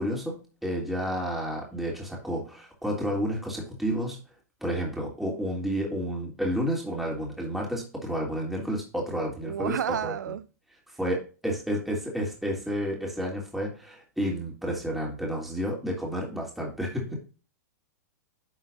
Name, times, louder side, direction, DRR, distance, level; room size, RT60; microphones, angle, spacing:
voice 1, 0.0-4.2 4.6-9.8 10.0-10.1 11.0-17.2, equal, ahead, 3.0 m, -30 dB
voice 2, 9.4-10.5 17.1-17.2, right 10 dB, 80° right, 0.7 m, -31 dB
10.5 x 5.5 x 2.7 m
hypercardioid pair, 115°, 9 cm